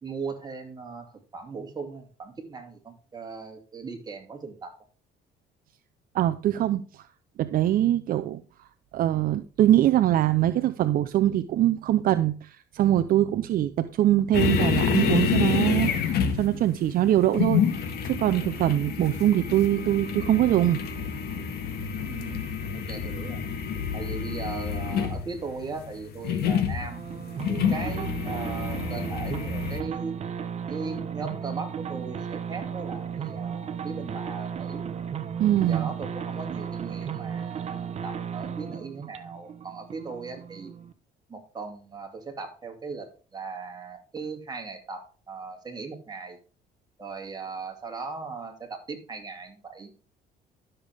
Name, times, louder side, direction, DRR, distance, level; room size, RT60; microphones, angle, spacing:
voice 1, 0.0-4.8 22.0-23.4 23.9-27.0 27.5-30.1 30.7-34.8 35.4-40.7 41.3-46.4 47.0-49.9, right 4 dB, 25° right, 2.7 m, -38 dB
voice 2, 6.1-6.8 7.4-8.4 8.9-20.8 35.4-35.9, right 12 dB, 60° right, 0.6 m, -23 dB
sound 1, 14.3-29.8, left 7 dB, 70° left, 1.8 m, -28 dB
sound 2, 26.8-40.9, right 7 dB, 40° right, 1.0 m, -35 dB
12.5 x 6.8 x 3.5 m
cardioid pair, 110°, 17 cm